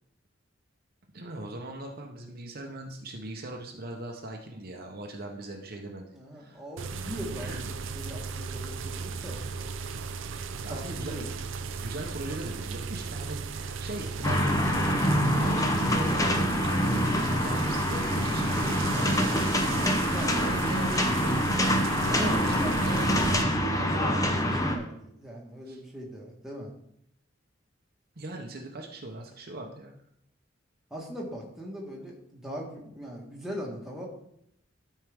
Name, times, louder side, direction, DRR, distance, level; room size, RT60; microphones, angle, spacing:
voice 1, 1.1-6.1 6.3-6.6 7.4-7.7 10.6-11.3 11.8-20.0 20.4-21.6 22.0-23.1 23.7-24.3 25.7-25.8 28.2-30.0, right 2 dB, 50° right, 1 dB, 0.9 m, -39 dB
voice 2, 6.1-9.4 10.7-11.3 20.1-20.8 22.2-22.7 23.3-26.7 30.9-34.1, equal, ahead, -3 dB, 1.6 m, -40 dB
sound 1, 6.8-23.4, right 5 dB, 75° right, 0.5 m, -36 dB
sound 2, 14.2-24.8, equal, 15° left, 0.8 m, -26 dB
12.0 x 4.6 x 3.6 m, 0.73 s
head